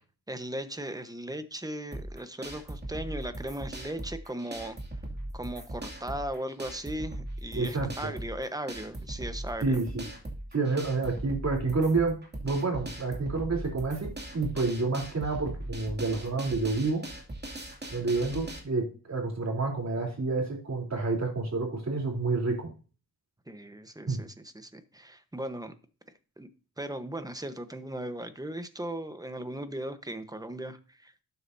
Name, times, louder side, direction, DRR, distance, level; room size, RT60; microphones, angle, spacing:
voice 1, 0.3-4.8 5.3-9.8 23.5-25.7 26.4-26.5 26.8-31.2, right 1 dB, 10° right, 1.1 m, -37 dB
sound 1, 1.9-18.6, right 1 dB, 30° right, 2.5 m, -39 dB
voice 2, 7.5-8.1 9.6-10.1 10.5-17.0 17.9-22.7 24.1-24.2, right 3 dB, 45° right, 3.5 m, -29 dB
12.0 x 8.1 x 2.7 m
wide cardioid pair, 90°, 36 cm